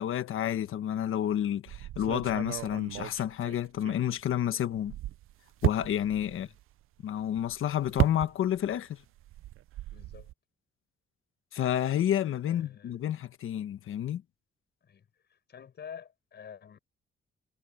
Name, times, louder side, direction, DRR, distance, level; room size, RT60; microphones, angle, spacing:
voice 1, 0.0-4.9 5.6-6.5 7.0-9.0 11.5-14.2, left 10 dB, 75° left, 1.3 m, -30 dB
sound 1, 1.7-4.4 4.7-8.8 9.0-10.3, right 15 dB, 80° right, 0.5 m, -35 dB
voice 2, 9.9-10.3 12.5-13.0 14.8-16.8, left 7 dB, 55° left, 7.1 m, -48 dB
wide cardioid pair, 145°, 21 cm